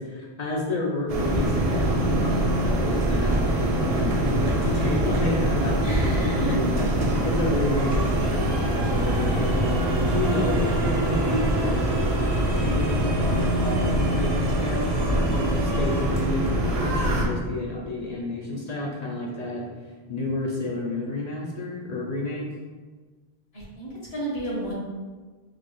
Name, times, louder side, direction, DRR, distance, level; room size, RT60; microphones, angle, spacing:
voice 1, 0.0-9.6 10.1-11.8 12.5-14.9 15.1-19.6 20.1-22.4, left 2 dB, 55° left, -2 dB, 0.5 m, -30 dB
sound 1, 1.1-17.2, right 1 dB, 50° right, 0.5 m, -24 dB
voice 2, 5.8-6.6 23.5-24.7, right 1 dB, 75° left, -6 dB, 1.4 m, -29 dB
3.9 x 2.3 x 3.1 m, 1.4 s
omnidirectional pair, 1.1 m